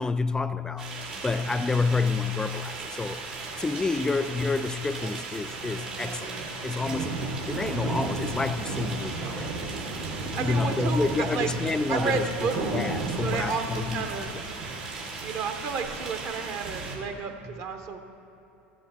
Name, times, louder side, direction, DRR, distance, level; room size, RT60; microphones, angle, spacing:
voice 1, 0.0-3.2 3.6-7.2 7.5-9.5 10.4-14.1 17.4-17.5, left 3 dB, 10° left, 0.3 m, -29 dB
sound 1, 0.8-16.9, right 3 dB, 80° right, 2.6 m, -34 dB
voice 2, 10.3-11.5 11.9-12.6 13.2-14.3 15.2-18.0, right 5 dB, 45° right, 1.0 m, -31 dB
14.5 x 7.8 x 3.4 m
hypercardioid pair, 80°, 6 cm